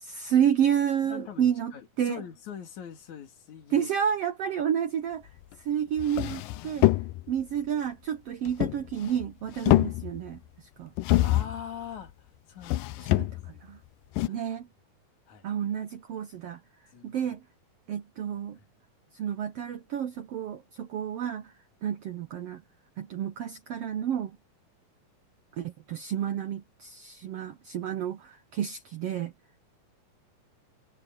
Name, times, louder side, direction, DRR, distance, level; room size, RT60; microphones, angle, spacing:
voice 1, 0.0-1.7 2.0-2.2 3.7-5.3 5.6-6.9 7.3-10.9 13.2-13.8 14.3-14.7 15.4-16.6 17.0-17.4 17.9-18.6 19.1-21.5 21.8-22.6 23.0-24.4 25.5-29.3, right 9 dB, 70° right, 1.5 m, -30 dB
voice 2, 1.0-3.9 11.2-13.4 14.2-14.4 15.3-15.5 16.9-17.4, left 8 dB, 65° left, 3.7 m, -43 dB
sound 1, 5.5-5.6 6.0-7.4 8.5-9.3 9.5-10.4 11.0-11.6 12.6-13.6 14.2-14.3, left 17 dB, 80° left, 2.3 m, -25 dB
omnidirectional pair, 3.8 m